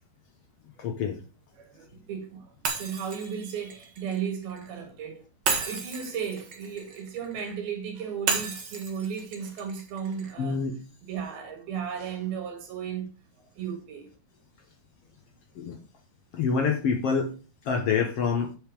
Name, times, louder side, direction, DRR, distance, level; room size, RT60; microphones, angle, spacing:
voice 1, 0.8-1.2 10.4-10.7 15.5-15.8 16.3-17.3 17.6-18.5, left 5 dB, 70° left, 1.4 m, -26 dB
voice 2, 1.6-5.3 5.7-10.6 11.1-13.1 13.6-14.1, right 7 dB, 75° right, 3.6 m, -35 dB
Shatter, 2.6-4.7 5.4-7.5 8.3-10.4, right 4 dB, 60° right, 1.1 m, -33 dB
8.6 x 5.7 x 4.9 m
omnidirectional pair, 4.4 m